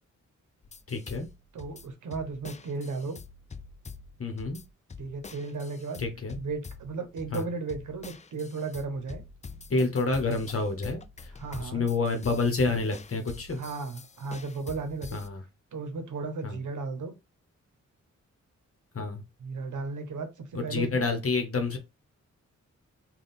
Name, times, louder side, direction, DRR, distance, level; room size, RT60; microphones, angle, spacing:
sound 1, 0.6-15.3, left 4 dB, 25° left, 0.4 m, -46 dB
voice 1, 0.9-1.3 4.2-4.6 6.0-6.4 7.3-7.4 9.7-11.3 11.6-13.6 15.1-15.4 16.4-16.6 18.9-19.2 20.5-21.8, left 3 dB, 50° left, 1.0 m, -28 dB
voice 2, 1.5-3.2 5.0-6.0 6.4-9.2 11.4-11.9 13.5-15.2 15.7-17.1 19.4-21.1, right 4 dB, 75° right, 0.8 m, -35 dB
3.4 x 2.3 x 4.1 m
cardioid pair, 55°, 30 cm